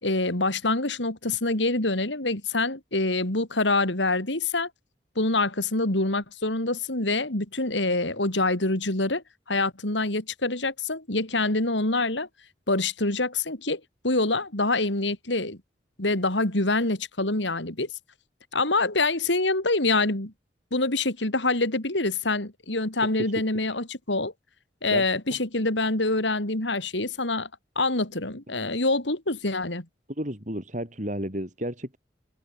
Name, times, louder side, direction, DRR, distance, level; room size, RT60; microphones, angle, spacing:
voice 1, 0.0-4.7 5.2-12.3 12.7-15.6 16.0-17.9 18.5-20.3 20.7-24.3 24.8-27.5 27.8-29.8, left 2 dB, 80° left, 4.2 m, -26 dB
voice 2, 30.2-32.0, equal, 40° right, 7.5 m, -32 dB
head